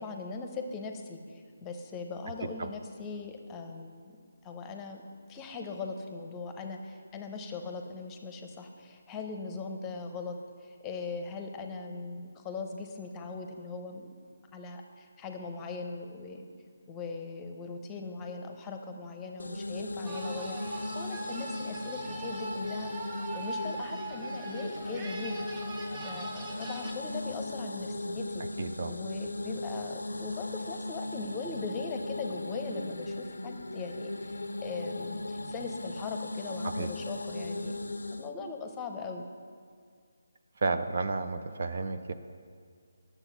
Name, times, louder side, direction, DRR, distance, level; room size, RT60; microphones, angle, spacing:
voice 1, 0.0-4.0 4.4-5.0 5.3-10.3 10.6-14.1 14.5-16.5 16.9-25.5 26.0-28.4 28.9-37.8 38.1-39.2, left 4 dB, 15° left, 5 dB, 0.8 m, -40 dB
sound 1, 19.4-38.3, left 2 dB, 80° left, 0.5 m, -38 dB
sound 2, 20.1-26.9, right 2 dB, 20° right, 1.0 m, -41 dB
voice 2, 28.6-28.9 36.6-36.9 40.6-42.1, right 3 dB, 55° right, 9 dB, 0.5 m, -32 dB
9.9 x 7.0 x 6.0 m, 2.1 s
figure-of-eight pair, 155°, 0 cm